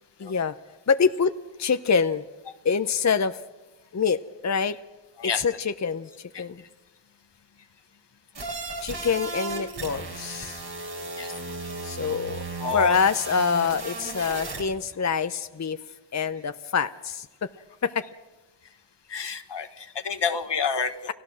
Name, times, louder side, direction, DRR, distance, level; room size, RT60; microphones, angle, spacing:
voice 1, 0.2-0.5 0.9-1.3 1.6-2.2 2.6-3.4 3.9-4.8 5.4-6.6 8.8-10.6 11.8-12.4 12.7-15.8 16.1-17.5 17.8-18.0, left 6 dB, 40° left, 11 dB, 0.7 m, -25 dB
sound 1, 8.3-14.6, right 3 dB, 75° right, 4.2 m, -35 dB
voice 2, 12.6-13.0 19.1-20.9, left 5 dB, 70° left, 8 dB, 1.5 m, -29 dB
29.5 x 15.0 x 6.3 m, 1.2 s
cardioid pair, 45°, 44 cm